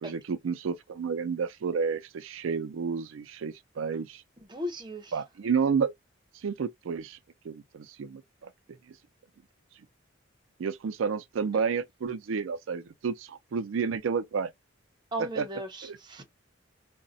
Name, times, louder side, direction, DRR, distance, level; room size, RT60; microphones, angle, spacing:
voice 1, 0.0-4.2 5.1-5.9 6.4-7.2 7.4-8.5 10.6-14.5 15.2-15.5 15.8-16.0, right 6 dB, 85° right, 0.4 m, -30 dB
voice 2, 4.4-5.2 11.5-11.6 15.1-16.2, right 1 dB, 25° right, 0.7 m, -37 dB
3.8 x 2.1 x 2.6 m
head